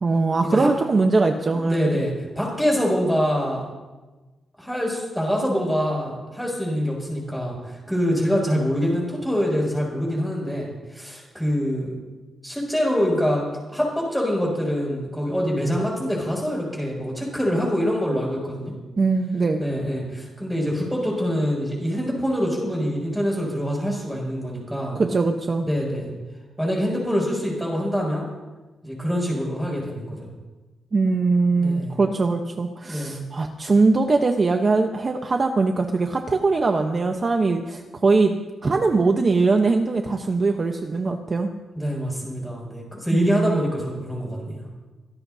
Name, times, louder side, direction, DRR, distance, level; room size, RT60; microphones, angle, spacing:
voice 1, 0.0-2.0 19.0-19.6 24.9-25.7 30.9-38.4 38.6-41.5 43.1-43.6, right 3 dB, 30° right, 4 dB, 1.0 m, -21 dB
voice 2, 1.5-3.7 4.6-12.0 12.4-18.7 19.6-25.0 25.6-26.1 26.6-28.3 28.8-30.3 31.6-32.0 32.8-33.2 41.8-44.7, equal, ahead, -2 dB, 6.9 m, -25 dB
25.0 x 17.5 x 2.8 m, 1.2 s
cardioid pair, 130°, 0 cm